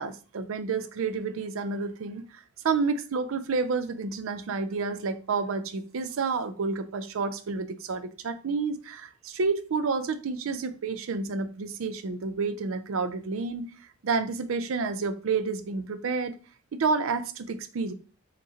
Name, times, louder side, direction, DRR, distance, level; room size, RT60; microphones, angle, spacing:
voice 1, 0.0-13.7 14.0-16.4 16.7-17.9, right 4 dB, 75° right, 0.4 m, -30 dB
4.6 x 3.1 x 2.8 m
head